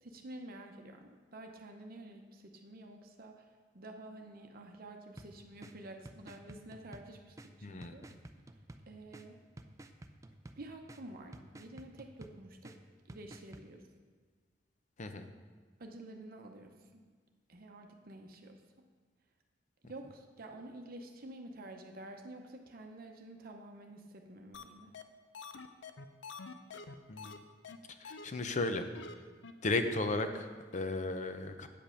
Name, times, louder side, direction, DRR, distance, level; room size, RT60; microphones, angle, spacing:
voice 1, 0.0-3.5 3.7-8.0 8.9-9.4 10.6-12.8 13.1-13.8 15.8-17.1 17.5-18.6 19.8-24.9, right 1 dB, 55° right, 3 dB, 0.7 m, -50 dB
sound 1, 5.1-13.7, right 1 dB, 15° right, 0.4 m, -54 dB
voice 2, 7.6-7.9 15.0-15.3 27.1-27.3 28.0-28.9 29.6-31.7, left 2 dB, 40° left, 8 dB, 0.6 m, -35 dB
sound 2, 24.5-24.6 24.9-25.0 25.3-27.4 27.6-27.8 28.0-28.2 28.6-28.7 28.9-29.1 29.4-29.5 29.8-30.0 30.3-30.4 30.7-30.8, left 4 dB, 85° left, 0.5 m, -47 dB
8.6 x 5.3 x 6.3 m, 1.5 s
head